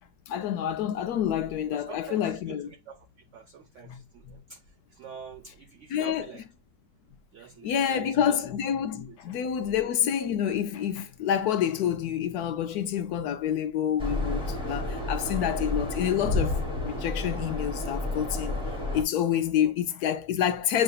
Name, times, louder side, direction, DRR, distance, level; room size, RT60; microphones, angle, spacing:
voice 1, 0.3-2.7 3.8-4.0 4.2-4.4 5.9-6.3 7.6-18.5 18.9-20.8, left 9 dB, 70° left, 1.0 m, -28 dB
voice 2, 1.7-3.0 3.3-4.6 5.0-6.4 7.3-8.4 9.1-9.2, right 6 dB, 85° right, 0.6 m, -45 dB
sound 1, 14.0-19.0, left 2 dB, 5° right, 1.1 m, -30 dB
7.4 x 2.6 x 2.3 m
omnidirectional pair, 1.9 m